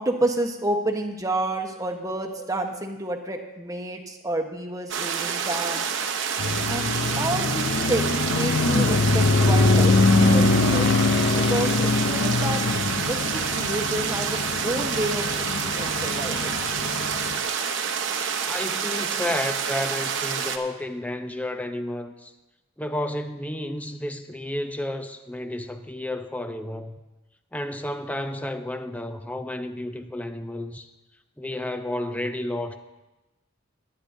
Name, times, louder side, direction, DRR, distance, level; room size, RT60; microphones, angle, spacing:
voice 1, 0.0-5.9 6.7-10.9 11.5-12.6 13.1-16.6, right 2 dB, 15° right, 1.1 m, -29 dB
sound 1, 4.9-20.6, right 6 dB, 65° right, 0.9 m, -28 dB
sound 2, 6.4-17.4, left 3 dB, 60° left, 0.6 m, -23 dB
voice 2, 18.4-22.3 22.8-27.0 27.5-30.9 31.4-32.8, left 1 dB, 10° left, 0.6 m, -31 dB
22.0 x 9.8 x 2.7 m
head